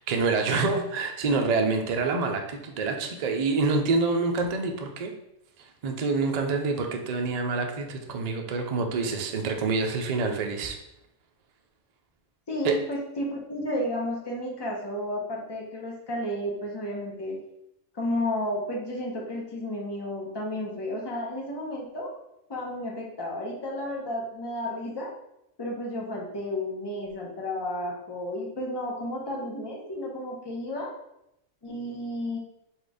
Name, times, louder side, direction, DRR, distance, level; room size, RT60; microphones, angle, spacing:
voice 1, 0.0-5.1 5.6-10.8 12.6-12.8, right 4 dB, 55° right, 3 dB, 0.4 m, -27 dB
voice 2, 12.5-17.4 17.9-22.2 22.5-25.1 25.6-30.9 31.6-32.4, left 1 dB, 20° left, -2 dB, 0.8 m, -32 dB
4.4 x 2.4 x 4.8 m, 0.82 s
omnidirectional pair, 1.3 m